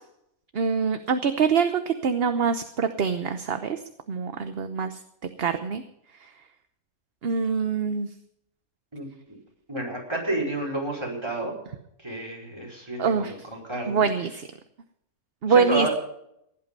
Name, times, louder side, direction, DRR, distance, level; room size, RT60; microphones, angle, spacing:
voice 1, 0.5-3.8 4.1-5.0 5.4-5.8 6.2-6.3 7.2-8.1 13.0-13.3 13.9-14.5 15.4-15.9, right 6 dB, 50° right, 8 dB, 1.0 m, -24 dB
voice 2, 8.9-9.4 9.7-11.5 12.0-14.1 15.5-15.9, right 2 dB, 20° right, -1 dB, 5.3 m, -30 dB
16.5 x 11.5 x 5.4 m, 0.77 s
omnidirectional pair, 1.5 m